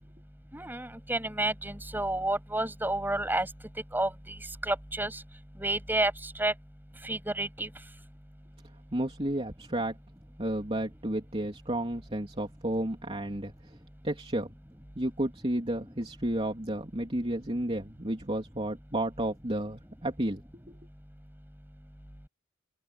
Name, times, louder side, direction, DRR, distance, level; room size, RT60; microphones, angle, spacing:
voice 1, 0.5-3.5 3.9-5.2 5.6-6.5 7.0-7.7, right 1 dB, 10° right, 7.8 m, -30 dB
voice 2, 8.9-10.0 10.4-13.5 14.0-14.5 14.9-20.4 20.7-20.8, right 1 dB, 25° right, 3.1 m, -32 dB
open air
head